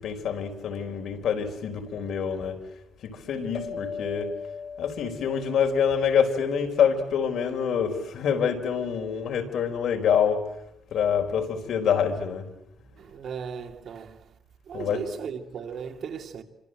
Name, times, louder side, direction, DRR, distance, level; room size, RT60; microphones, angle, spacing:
voice 1, 0.0-2.6 3.0-4.3 4.8-10.4 10.9-12.5 14.7-15.0, left 7 dB, 80° left, 4.4 m, -26 dB
sound 1, 3.6-6.5, left 6 dB, 35° left, 1.7 m, -39 dB
voice 2, 12.9-14.3 14.7-16.4, right 7 dB, 65° right, 2.7 m, -37 dB
29.0 x 25.5 x 7.9 m
cardioid pair, 140°, 0 cm